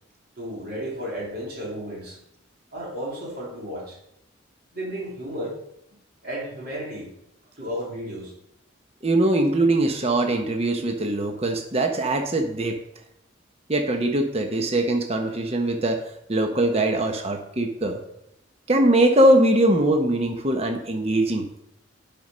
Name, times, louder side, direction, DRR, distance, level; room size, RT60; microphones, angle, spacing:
voice 1, 0.4-2.2 2.7-4.0 4.7-5.6 6.2-7.1 7.6-8.3, equal, 50° right, -4 dB, 3.5 m, -33 dB
voice 2, 9.0-12.7 13.7-16.0 16.3-18.0 18.7-21.4, right 1 dB, 30° right, 4 dB, 0.9 m, -21 dB
9.2 x 5.3 x 5.6 m, 0.78 s
head